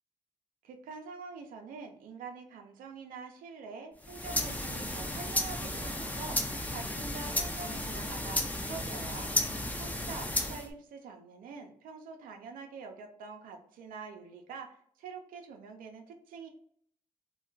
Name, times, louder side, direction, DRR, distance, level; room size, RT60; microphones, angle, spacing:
voice 1, 0.6-6.4 6.7-9.3 9.8-16.5, right 5 dB, 85° right, 4 dB, 0.5 m, -45 dB
sound 1, 4.0-10.7, left 1 dB, 10° left, 0.5 m, -34 dB
2.3 x 2.1 x 3.8 m, 0.63 s
cardioid pair, 65°, 14 cm